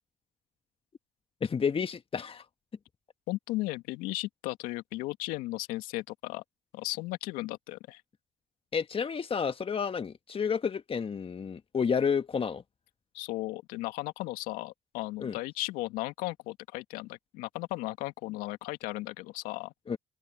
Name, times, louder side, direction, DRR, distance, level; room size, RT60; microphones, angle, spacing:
voice 1, 1.4-2.4 8.7-12.6 15.2-15.4 19.9-20.0, left 6 dB, 40° left, 1.6 m, -30 dB
voice 2, 3.3-6.4 6.7-8.0 13.1-19.7, left 19 dB, 80° left, 2.2 m, -36 dB
open air
hypercardioid pair, 50°, 14 cm